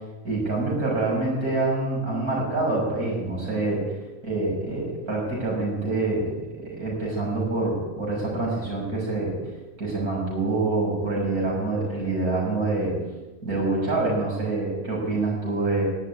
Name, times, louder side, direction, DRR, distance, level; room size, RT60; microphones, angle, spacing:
voice 1, 0.2-3.8 4.2-6.3 6.6-9.4 9.8-12.9 13.4-15.8, right 2 dB, 85° right, -3 dB, 6.9 m, -26 dB
18.0 x 7.4 x 9.9 m, 1.1 s
omnidirectional pair, 1.5 m